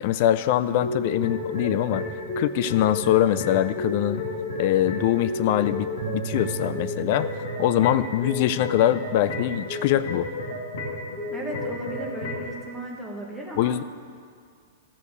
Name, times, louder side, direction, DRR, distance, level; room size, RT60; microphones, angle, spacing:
voice 1, 0.0-2.1 2.4-4.2 4.6-7.3 7.6-10.3 13.6-13.8, left 12 dB, 40° left, 15 dB, 0.3 m, -23 dB
sound 1, 0.8-12.6, left 2 dB, 70° left, 2.2 m, -32 dB
Bass guitar, 6.0-12.3, right 8 dB, 45° right, 0.4 m, -40 dB
voice 2, 11.3-13.7, right 1 dB, ahead, -2 dB, 1.2 m, -35 dB
14.5 x 5.1 x 6.7 m, 2.1 s
supercardioid pair, 175°, 0 cm